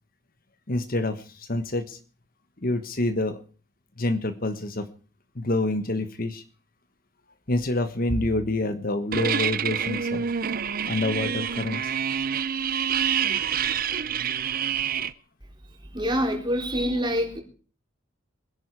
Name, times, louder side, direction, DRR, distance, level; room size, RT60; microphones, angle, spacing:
voice 1, 0.7-2.0 2.6-3.4 4.0-4.9 5.3-6.4 7.5-10.3 10.9-11.9, left 2 dB, 50° left, 10 dB, 1.3 m, -27 dB
sound 1, 9.1-15.1, right 8 dB, 50° right, 0.7 m, -27 dB
voice 2, 15.9-17.4, equal, 25° right, 1 dB, 4.1 m, -26 dB
23.5 x 11.0 x 4.8 m, 0.39 s
head